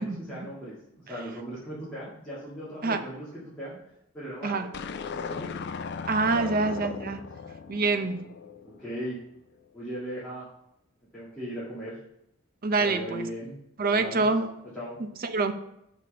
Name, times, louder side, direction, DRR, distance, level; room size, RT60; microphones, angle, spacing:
voice 1, 0.0-3.8 4.1-4.7 5.1-5.5 6.2-6.6 7.4-7.5 8.6-9.2 9.7-10.5 11.1-12.0 12.8-13.6 13.9-14.3 14.7-15.0, equal, 5° left, -11 dB, 1.9 m, -38 dB
sound 1, 4.7-9.1, left 5 dB, 55° left, 0.4 m, -37 dB
voice 2, 6.1-7.2 7.7-8.3 12.6-13.3 13.8-14.5 15.2-15.5, right 3 dB, 45° right, 8 dB, 0.6 m, -26 dB
6.2 x 4.2 x 6.2 m, 0.81 s
head